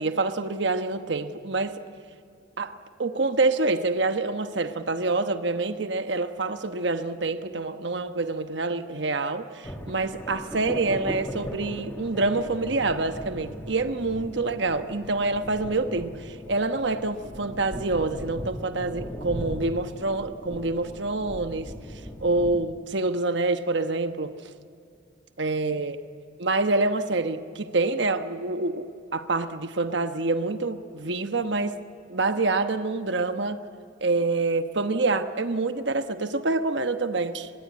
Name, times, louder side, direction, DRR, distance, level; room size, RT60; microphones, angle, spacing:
voice 1, 0.0-1.8 2.6-2.7 3.0-21.7 22.2-24.5 25.4-26.0 26.4-28.9 29.1-31.8 32.1-33.6 34.0-37.5, right 3 dB, 65° right, 9 dB, 1.1 m, -26 dB
sound 1, 9.6-22.6, equal, 10° left, 1.9 m, -38 dB
24.0 x 21.0 x 9.5 m, 2.5 s
head